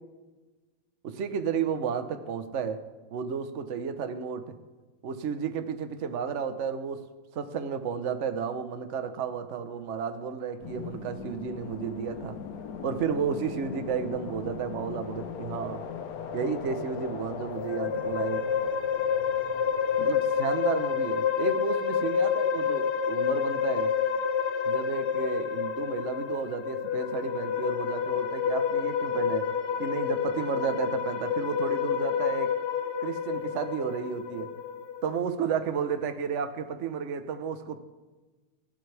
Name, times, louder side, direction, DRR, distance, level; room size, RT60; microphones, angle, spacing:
voice 1, 1.0-2.8 3.1-4.6 5.0-7.0 7.3-12.4 12.8-15.8 16.3-18.5 20.0-23.9 24.6-29.5 29.8-32.5 33.0-34.5 35.0-37.8, right 6 dB, 45° right, 9 dB, 1.0 m, -32 dB
sound 1, 10.6-21.1, left 7 dB, 60° left, 1.0 m, -40 dB
sound 2, 17.6-35.2, left 7 dB, 85° left, 0.6 m, -29 dB
27.5 x 12.0 x 3.5 m, 1.2 s
omnidirectional pair, 2.4 m